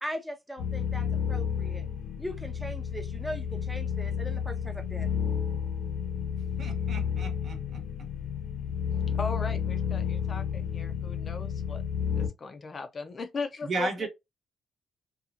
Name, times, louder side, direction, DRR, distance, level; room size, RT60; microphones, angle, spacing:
voice 1, 0.0-1.9 2.2-5.1, equal, 5° right, 0.6 m, -39 dB
sound 1, 0.6-12.3, left 7 dB, 80° left, 0.8 m, -31 dB
voice 2, 6.6-7.8 13.6-14.1, right 3 dB, 50° right, 1.0 m, -34 dB
voice 3, 9.2-11.8 12.2-14.1, left 4 dB, 40° left, 0.5 m, -37 dB
2.8 x 2.3 x 2.4 m
cardioid pair, 90°, 0 cm